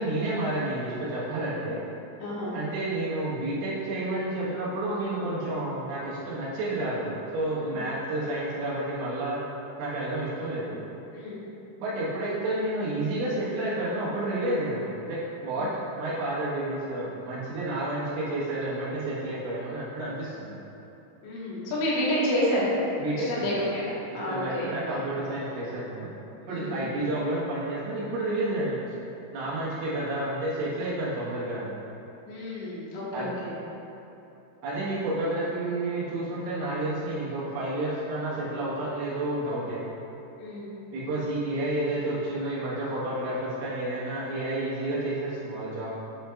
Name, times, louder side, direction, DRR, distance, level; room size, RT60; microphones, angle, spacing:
voice 1, 0.0-1.8 2.5-9.4 9.8-10.8 11.8-15.7 16.0-20.6 23.0-23.6 24.3-26.1 26.5-28.8 29.3-31.7 33.1-33.3 34.6-39.9 40.9-46.0, right 1 dB, 85° right, -8 dB, 4.1 m, -30 dB
voice 2, 2.2-2.6 7.6-7.8 11.1-11.4 15.6-15.7 21.2-22.7 23.1-24.7 26.4-26.8 32.3-33.6 40.4-40.8, left 1 dB, 85° left, -7 dB, 4.0 m, -30 dB
10.5 x 5.8 x 2.5 m, 2.9 s
omnidirectional pair, 5.4 m